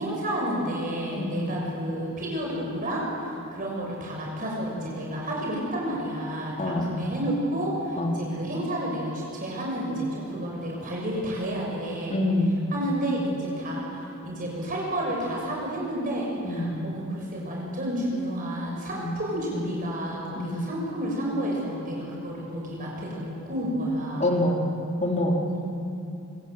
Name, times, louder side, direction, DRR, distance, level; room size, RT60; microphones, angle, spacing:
voice 1, 0.0-12.2 12.7-24.3 25.5-25.6, right 1 dB, 40° right, -3 dB, 6.4 m, -31 dB
voice 2, 1.1-1.6 6.6-7.1 8.0-8.3 12.1-12.6 16.4-16.8 18.9-19.1 20.4-20.6 24.2-24.6 25.0-25.4, left 1 dB, 35° left, 0 dB, 3.6 m, -26 dB
26.5 x 25.5 x 8.1 m, 2.8 s
head